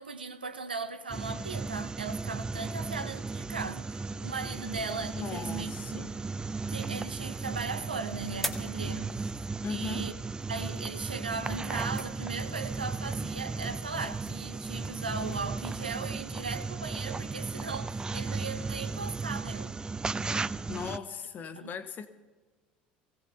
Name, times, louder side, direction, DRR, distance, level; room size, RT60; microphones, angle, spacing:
voice 1, 0.0-6.1 6.7-9.3 9.7-10.1 10.5-19.7 21.5-21.7, right 4 dB, 85° right, 0.7 m, -38 dB
sound 1, 1.1-21.0, right 4 dB, 15° right, 0.5 m, -35 dB
sound 2, 4.4-15.5, equal, 5° left, 1.6 m, -47 dB
voice 2, 5.1-6.2 9.6-10.1 20.7-22.1, left 6 dB, 40° left, 1.3 m, -38 dB
24.0 x 17.0 x 2.8 m
figure-of-eight pair, 65°, 5 cm